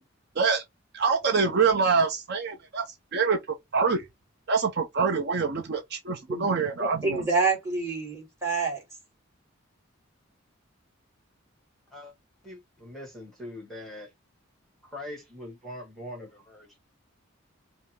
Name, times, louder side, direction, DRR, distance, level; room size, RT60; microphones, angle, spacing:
voice 1, 0.9-3.4 3.7-4.0 4.5-7.2, right 5 dB, 50° right, 0.6 m, -25 dB
voice 2, 6.8-8.8, right 4 dB, 15° right, 2.1 m, -27 dB
voice 3, 12.4-14.1 14.8-16.7, left 1 dB, ahead, 1.1 m, -42 dB
5.4 x 2.0 x 3.2 m
head